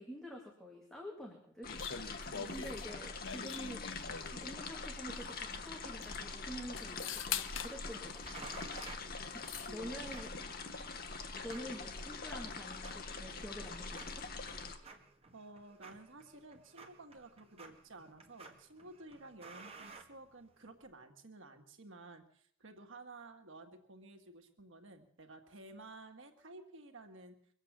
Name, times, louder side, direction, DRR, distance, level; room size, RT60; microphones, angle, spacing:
voice 1, 0.0-1.7 2.0-8.4 9.3-10.5 11.3-14.1, equal, ahead, -2 dB, 2.3 m, -48 dB
sound 1, 1.6-14.8, left 4 dB, 50° left, 1.5 m, -44 dB
sound 2, 1.7-4.5 5.5-5.6 5.9-6.2 6.8-7.8 8.5-9.0 9.2-9.7, left 8 dB, 85° left, 0.8 m, -43 dB
voice 2, 2.3-2.8 9.5-10.0 15.3-27.4, right 2 dB, 85° right, 4 dB, 1.8 m, -53 dB
sound 3, 8.3-20.8, right 4 dB, 30° right, 1.7 m, -56 dB
23.0 x 8.2 x 7.4 m, 0.64 s
head